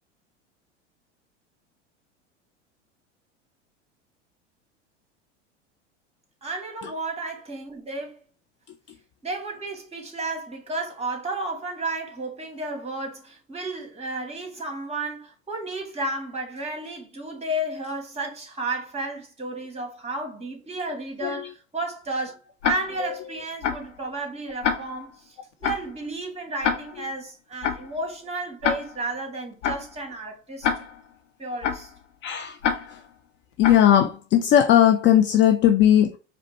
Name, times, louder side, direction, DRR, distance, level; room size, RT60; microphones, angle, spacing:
voice 1, 6.4-8.2 9.2-22.4 22.6-30.9 31.4-31.9, right 2 dB, 15° right, 1.9 m, -32 dB
Tick-tock, 22.6-23.1 23.6-24.0 24.6-25.1 25.6-26.0 26.6-27.1 27.6-28.0 28.6-29.1 29.6-30.0 30.6-31.1 31.6-32.0 32.6-33.1 33.6-34.0, left 7 dB, 75° left, 0.9 m, -27 dB
voice 2, 32.2-32.6 32.9-33.0 33.6-36.2, left 10 dB, 35° left, 0.5 m, -18 dB
4.9 x 2.2 x 4.1 m
hypercardioid pair, 85°, 36 cm